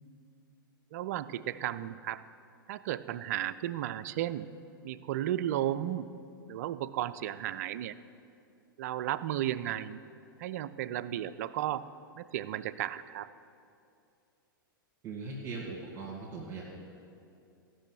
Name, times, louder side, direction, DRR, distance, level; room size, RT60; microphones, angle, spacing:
voice 1, 0.9-2.2 2.7-4.5 4.8-6.1 6.5-8.0 8.8-10.0 10.4-11.9 12.2-13.3, right 12 dB, 45° right, 15 dB, 0.4 m, -34 dB
voice 2, 15.0-16.6, right 4 dB, 25° right, -5 dB, 2.0 m, -40 dB
15.5 x 6.2 x 6.3 m, 2.6 s
figure-of-eight pair, 100°, 12 cm